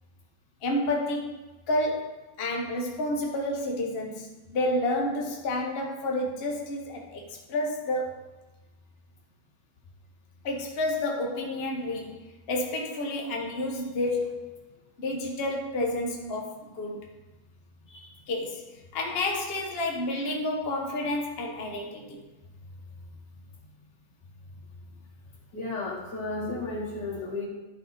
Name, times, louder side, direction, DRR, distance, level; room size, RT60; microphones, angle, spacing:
voice 1, 0.6-1.4 1.7-8.3 10.4-14.7 15.0-17.1 18.3-22.2, left 1 dB, 40° left, 0 dB, 1.0 m, -30 dB
voice 2, 25.5-27.5, left 2 dB, 75° left, -2 dB, 2.3 m, -33 dB
12.0 x 4.1 x 4.2 m, 1.1 s
omnidirectional pair, 1.9 m